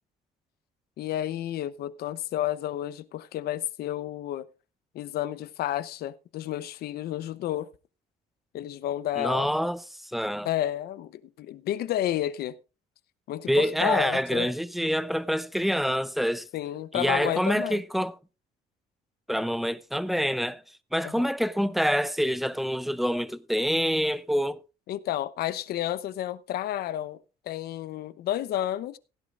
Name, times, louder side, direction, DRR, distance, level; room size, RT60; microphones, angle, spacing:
voice 1, 1.0-4.5 4.9-7.7 8.5-9.5 10.4-12.5 13.3-14.5 16.5-17.8 21.0-21.3 24.9-27.2 27.5-29.0, left 12 dB, 70° left, 0.8 m, -31 dB
voice 2, 9.2-9.8 10.1-10.5 13.5-16.5 16.9-18.1 19.3-20.6 20.9-24.6, equal, ahead, 0.6 m, -26 dB
16.5 x 11.0 x 2.5 m
cardioid pair, 110°, 17 cm